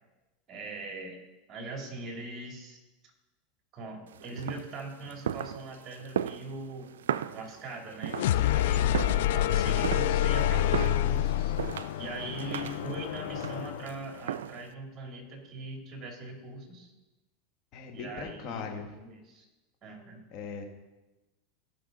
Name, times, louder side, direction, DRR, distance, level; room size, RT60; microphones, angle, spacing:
voice 1, 0.5-1.2 1.5-2.8 3.7-6.9 7.3-16.9 17.9-19.4 19.8-20.2, right 2 dB, 30° right, 2 dB, 2.8 m, -41 dB
sound 1, 4.1-14.7, right 9 dB, 85° right, 0.3 m, -37 dB
sound 2, 8.1-14.0, left 12 dB, 75° left, 0.4 m, -27 dB
voice 2, 17.7-18.9 20.3-20.7, left 5 dB, 50° left, 2 dB, 1.5 m, -39 dB
16.5 x 5.8 x 3.9 m, 1.1 s
hypercardioid pair, 110°, 0 cm